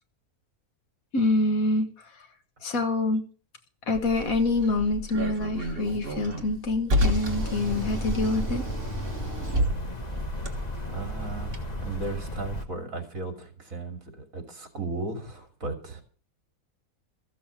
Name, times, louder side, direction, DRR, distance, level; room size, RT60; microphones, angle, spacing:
voice 1, 1.1-1.9 2.6-3.2 3.9-8.6, left 2 dB, 65° left, 8 dB, 1.7 m, -26 dB
Car, 3.9-11.6, equal, 40° right, 1.9 m, -31 dB
sound 1, 7.3-12.7, left 1 dB, 30° left, 1.2 m, -34 dB
voice 2, 10.9-16.0, right 3 dB, 60° right, 5 dB, 3.2 m, -35 dB
14.0 x 7.2 x 7.3 m, 0.41 s
omnidirectional pair, 1.6 m